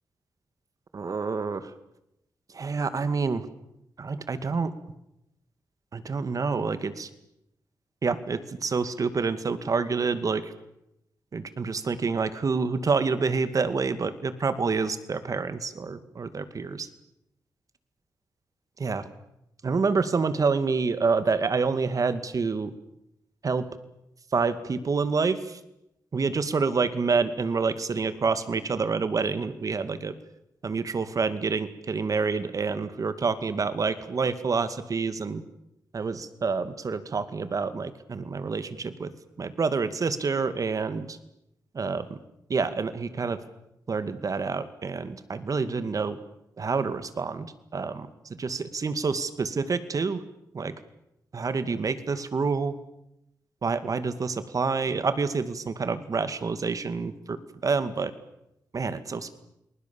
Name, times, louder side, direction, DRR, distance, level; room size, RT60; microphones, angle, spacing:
voice 1, 0.9-1.7 2.5-3.5 4.0-4.7 5.9-7.1 8.0-10.5 11.3-16.9 18.8-19.1 19.6-22.7 23.4-23.6 24.3-25.6 26.1-30.1 30.6-35.4 35.9-39.1 39.4-41.2 41.7-42.2 42.5-43.4 43.9-46.2 46.6-48.1 48.4-50.2 50.5-50.7 51.3-52.8 53.6-57.4 57.6-58.1 58.7-59.3, right 4 dB, 55° right, 12 dB, 2.2 m, -27 dB
29.0 x 20.0 x 7.2 m, 0.84 s
cardioid pair, 65°, 7 cm